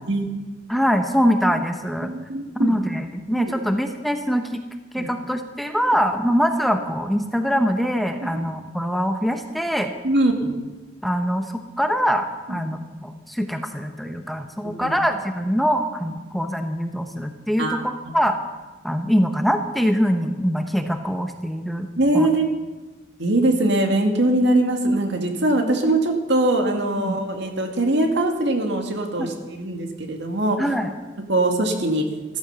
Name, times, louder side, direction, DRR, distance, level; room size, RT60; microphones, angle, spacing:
voice 1, 0.7-2.1 2.6-4.6 4.9-9.9 11.0-17.8 18.1-18.4 18.8-21.9 22.1-22.3 27.0-27.2 29.2-29.3 30.6-30.9, equal, ahead, 6 dB, 0.8 m, -23 dB
voice 2, 2.0-2.8 3.3-3.5 5.0-5.1 8.2-8.5 10.0-10.5 12.5-12.6 14.6-14.9 17.6-18.2 22.0-22.5 23.2-30.6 31.3-32.1, right 1 dB, 60° right, 4 dB, 2.3 m, -22 dB
14.5 x 14.0 x 6.8 m, 1.2 s
head